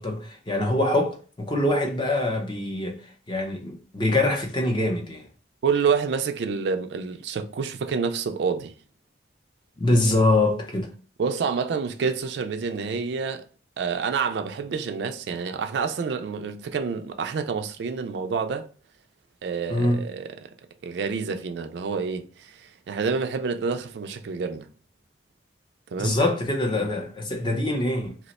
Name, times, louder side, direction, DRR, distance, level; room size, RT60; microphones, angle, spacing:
voice 1, 0.0-3.0 3.3-5.3 9.8-10.9 19.7-20.1 26.0-28.2, left 2 dB, 25° left, 0.5 m, -24 dB
voice 2, 5.6-8.7 11.2-13.5 13.8-18.7 19.4-20.5 20.8-24.7 25.9-26.2 26.7-26.9, right 5 dB, 70° right, 0.3 m, -28 dB
2.8 x 2.1 x 4.0 m
head